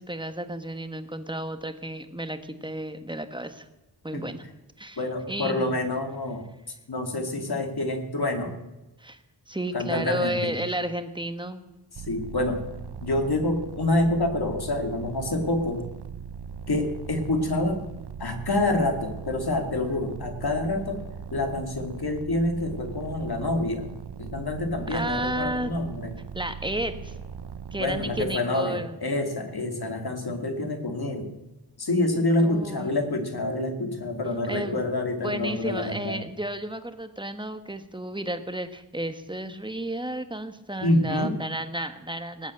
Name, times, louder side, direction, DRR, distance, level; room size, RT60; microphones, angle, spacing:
voice 1, 0.0-3.7 4.0-4.4 4.8-5.0 5.3-5.8 9.0-9.2 9.5-11.7 24.9-25.7 26.3-27.1 27.7-28.9 32.4-33.0 34.5-34.8 35.2-42.5, right 1 dB, 10° right, 9 dB, 1.3 m, -32 dB
voice 2, 5.0-6.5 6.9-8.6 9.7-10.6 12.0-12.6 13.0-15.8 16.7-17.8 18.2-21.0 21.3-23.9 24.2-26.1 27.8-31.3 31.8-36.2 40.8-41.3, left 2 dB, 70° left, 5 dB, 2.5 m, -27 dB
sound 1, 11.9-28.4, right 6 dB, 75° right, 0.8 m, -39 dB
19.0 x 8.3 x 7.8 m, 1.0 s
wide cardioid pair, 70°, 39 cm